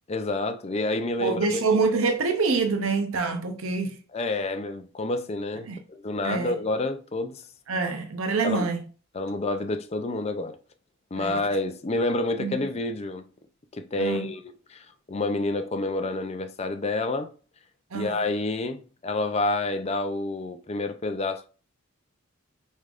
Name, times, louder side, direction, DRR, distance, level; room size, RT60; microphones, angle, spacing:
voice 1, 0.1-1.6 4.1-7.4 8.4-8.7 9.1-10.6 11.1-13.2 13.7-17.3 17.9-21.5, left 2 dB, 30° left, 0.5 m, -28 dB
voice 2, 1.2-4.0 5.7-5.8 6.2-6.5 7.7-8.8 11.2-11.4 12.4-12.6 14.0-14.3 17.9-18.1, right 4 dB, 75° right, 0.7 m, -26 dB
5.1 x 3.2 x 2.5 m
head